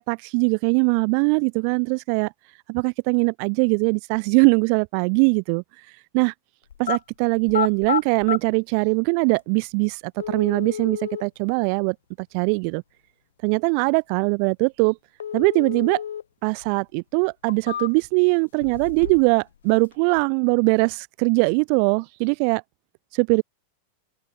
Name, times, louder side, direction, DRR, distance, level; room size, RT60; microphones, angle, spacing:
voice 1, 0.0-2.3 2.7-5.6 6.1-6.3 6.8-10.0 10.3-11.9 12.3-12.8 13.4-14.9 15.3-16.0 16.4-22.6 23.1-23.4, right 40 dB or more, 45° right, 0.5 m, -21 dB
sound 1, 6.7-7.0 7.4-8.4 9.4-9.5 10.2-11.2 15.2-16.2 16.6-16.7 17.3-18.2 18.6-19.3 19.6-20.2, left 9 dB, 65° left, 0.9 m, -30 dB
open air
figure-of-eight pair, 90°, 0 cm